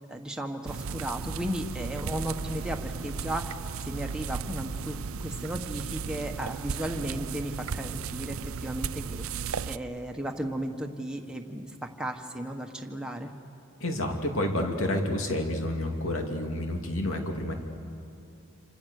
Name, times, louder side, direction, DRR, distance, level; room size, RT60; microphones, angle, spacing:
voice 1, 0.1-13.3, right 1 dB, 5° right, 2 dB, 1.4 m, -35 dB
sound 1, 0.7-9.8, right 5 dB, 75° right, 0.6 m, -35 dB
voice 2, 13.8-17.5, left 1 dB, 70° left, 3 dB, 2.7 m, -29 dB
27.5 x 26.5 x 6.7 m, 2.8 s
head